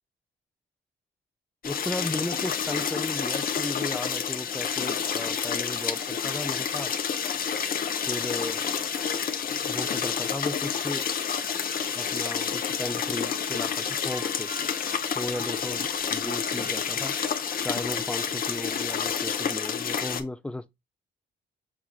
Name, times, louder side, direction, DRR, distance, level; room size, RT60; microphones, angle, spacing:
sound 1, 1.6-20.2, left 7 dB, 45° left, 0.7 m, -29 dB
voice 1, 1.6-6.9 8.1-8.8 9.5-11.1 11.9-14.5 15.2-17.2 17.6-20.7, left 1 dB, 5° left, 0.4 m, -35 dB
sound 2, 14.1-17.6 18.7-18.8, right 3 dB, 30° right, 1.0 m, -47 dB
6.2 x 3.5 x 2.2 m
cardioid pair, 90°, 20 cm